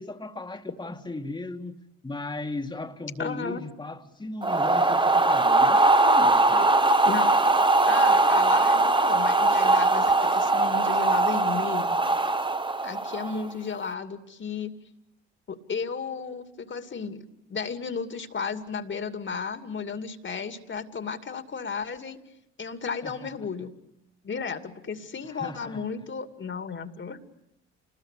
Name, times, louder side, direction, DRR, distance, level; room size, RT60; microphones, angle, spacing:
voice 1, 0.0-6.7 23.0-23.5 25.2-25.8, left 2 dB, 15° left, 2.0 m, -37 dB
voice 2, 3.2-3.6 7.0-7.3 7.9-12.0 12.8-14.7 15.5-17.2 17.5-22.2 22.6-23.7 24.2-27.2, left 5 dB, 40° left, 2.6 m, -34 dB
sound 1, 4.4-13.5, right 2 dB, 15° right, 1.5 m, -21 dB
28.5 x 21.0 x 8.4 m
hypercardioid pair, 60°, 30 cm